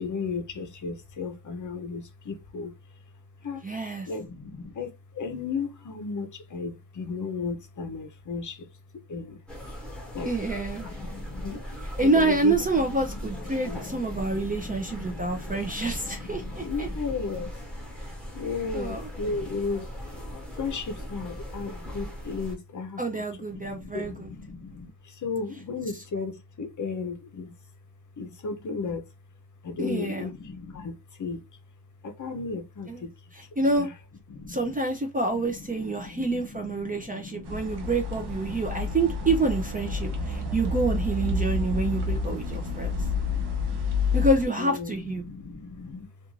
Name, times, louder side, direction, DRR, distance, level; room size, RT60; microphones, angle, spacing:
voice 1, 0.0-2.7 3.4-3.6 4.1-9.4 9.7-9.8 10.1-10.3 10.8-17.5 18.3-19.9 20.5-23.2 23.5-27.5 28.2-29.1 29.6-31.5 32.0-33.1 33.7-33.9 34.3-34.8 35.3-39.4 39.8-41.0 41.3-43.8 44.6-46.1, left 4 dB, 45° left, 0.6 m, -36 dB
voice 2, 3.6-4.1 10.2-10.9 12.0-16.9 18.7-19.1 23.0-24.3 29.8-30.3 32.9-33.0 33.3-33.9 34.5-43.0 44.1-45.2, right 2 dB, 20° right, 0.4 m, -27 dB
sound 1, 9.5-22.6, equal, ahead, 1.0 m, -38 dB
sound 2, 37.4-44.4, left 3 dB, 70° right, 0.7 m, -29 dB
2.4 x 2.4 x 3.0 m
wide cardioid pair, 165°, 41 cm